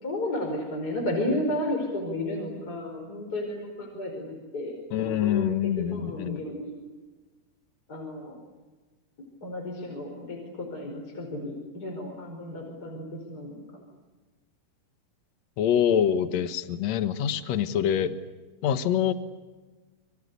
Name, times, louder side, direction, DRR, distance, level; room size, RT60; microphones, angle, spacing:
voice 1, 0.0-4.7 5.0-5.4 5.9-6.7 7.9-8.3 9.4-13.6, left 1 dB, 25° left, 2 dB, 5.2 m, -32 dB
voice 2, 4.9-6.4 15.6-18.1 18.6-19.1, left 9 dB, 60° left, 11 dB, 2.4 m, -25 dB
28.0 x 25.0 x 8.3 m, 1.3 s
omnidirectional pair, 3.8 m